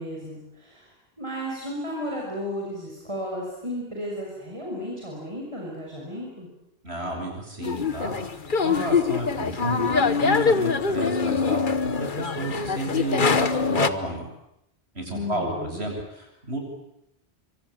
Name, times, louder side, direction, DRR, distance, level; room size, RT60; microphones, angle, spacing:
voice 1, 0.0-6.5 15.1-15.8, equal, 30° right, -2 dB, 6.0 m, -34 dB
voice 2, 6.8-14.3 14.9-16.6, right 1 dB, 75° right, 1 dB, 8.4 m, -32 dB
sound 1, 7.6-13.9, left 5 dB, 50° left, 1.4 m, -24 dB
27.0 x 25.5 x 8.8 m, 0.79 s
omnidirectional pair, 1.1 m